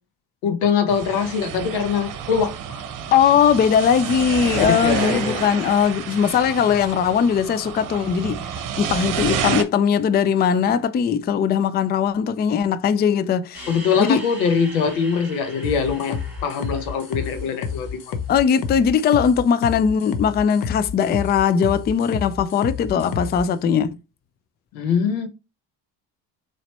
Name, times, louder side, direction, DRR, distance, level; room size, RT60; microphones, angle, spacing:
voice 1, 0.4-2.8 4.8-5.4 9.0-9.4 13.7-18.2 24.7-25.3, left 6 dB, 90° left, 1.0 m, -23 dB
sound 1, 0.9-9.6, right 8 dB, 50° right, 0.9 m, -29 dB
voice 2, 3.1-13.7 14.0-14.2 18.3-24.0, left 7 dB, 25° left, 0.4 m, -20 dB
sound 2, 13.5-18.9, right 1 dB, 5° right, 2.5 m, -41 dB
sound 3, 15.6-23.4, left 6 dB, 60° left, 0.8 m, -30 dB
4.2 x 3.1 x 2.9 m
supercardioid pair, 75°, 41 cm